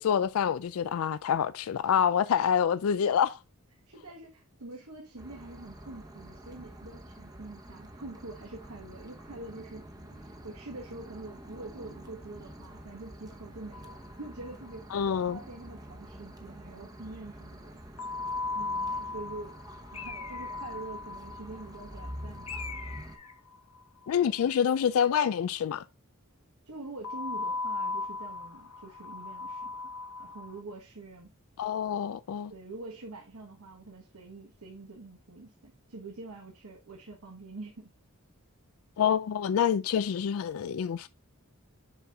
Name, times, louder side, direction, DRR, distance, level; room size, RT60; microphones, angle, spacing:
voice 1, 0.0-3.4 14.9-15.4 24.1-25.8 31.6-32.5 39.0-41.1, left 8 dB, 70° left, 0.3 m, -27 dB
voice 2, 3.9-9.8 10.2-14.8 15.3-17.8 18.5-19.6 19.9-22.8 24.2-24.4 26.6-29.9 30.2-31.3 32.5-37.9, right 2 dB, 90° right, 1.3 m, -45 dB
sound 1, 5.2-23.2, right 1 dB, 15° right, 0.9 m, -47 dB
sound 2, 13.7-14.7 15.0-15.1 15.3-15.4 18.0-24.1 27.0-30.6, left 3 dB, 90° left, 0.7 m, -37 dB
Bird, 19.9-20.8 22.5-23.4, left 6 dB, 25° left, 0.7 m, -42 dB
7.0 x 4.4 x 3.5 m
head